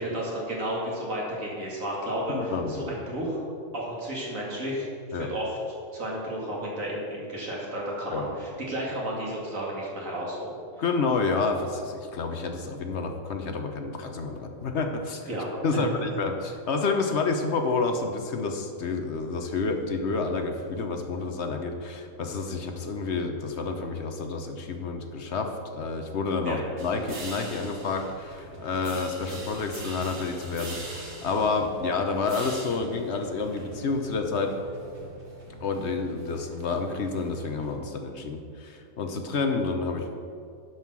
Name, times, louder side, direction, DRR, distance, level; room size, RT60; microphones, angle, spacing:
voice 1, 0.0-3.4 3.7-5.6 5.9-10.6 15.3-15.9 26.4-26.6, right 1 dB, 70° right, -4 dB, 2.6 m, -32 dB
voice 2, 2.3-2.9 5.1-5.3 8.1-8.3 10.8-15.3 15.6-34.5 35.6-40.3, left 4 dB, 55° left, 5 dB, 1.1 m, -29 dB
sound 1, 26.8-37.7, right 2 dB, 55° right, 1.9 m, -42 dB
11.0 x 5.6 x 6.1 m, 2.3 s
omnidirectional pair, 1.4 m